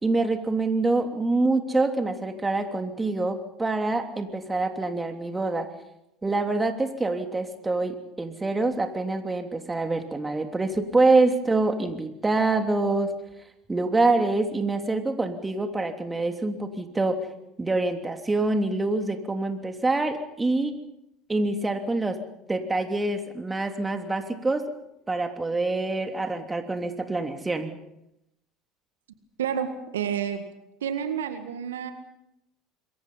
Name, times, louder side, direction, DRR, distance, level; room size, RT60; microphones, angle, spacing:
voice 1, 0.0-5.7 6.2-13.1 13.7-17.2 17.6-20.8 21.3-22.2 22.5-24.7 25.1-27.7, right 2 dB, 15° right, 5 dB, 3.1 m, -25 dB
voice 2, 29.4-30.5 30.8-31.9, right 8 dB, 80° right, 8 dB, 1.8 m, -29 dB
26.5 x 22.5 x 5.7 m, 0.85 s
hypercardioid pair, 70°, 0 cm